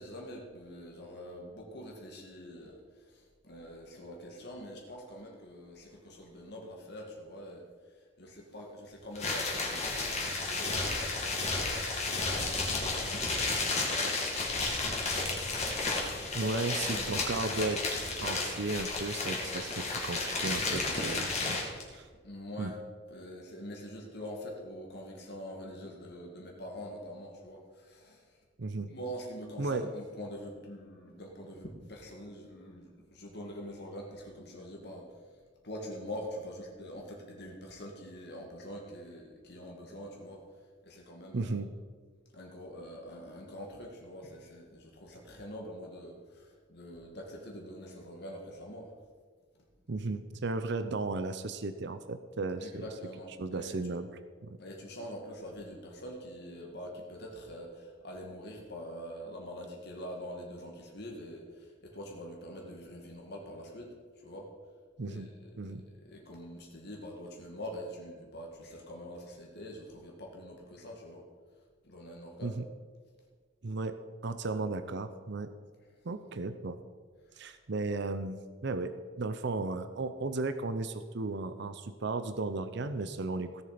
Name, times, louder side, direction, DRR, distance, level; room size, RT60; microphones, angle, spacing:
voice 1, 0.0-17.3 22.2-22.8 23.1-28.4 28.9-40.6 40.8-41.6 42.3-48.9 52.6-54.0 54.6-64.0 64.2-64.5 65.1-65.8 66.0-71.3 71.8-72.6 77.3-77.5, equal, 60° left, -1 dB, 2.1 m, -45 dB
sound 1, 9.1-21.8, left 3 dB, 35° left, 2.5 m, -32 dB
voice 2, 16.3-21.6 21.9-22.0 22.6-22.7 28.6-28.9 29.6-29.9 41.3-41.7 49.9-52.8 53.4-54.1 54.4-54.6 65.0-65.3 65.6-65.8 72.4-72.6 73.6-75.5 76.0-76.8 77.4-78.9 79.2-83.6, right 3 dB, 65° right, 11 dB, 0.7 m, -35 dB
17.0 x 7.3 x 5.1 m, 1.5 s
head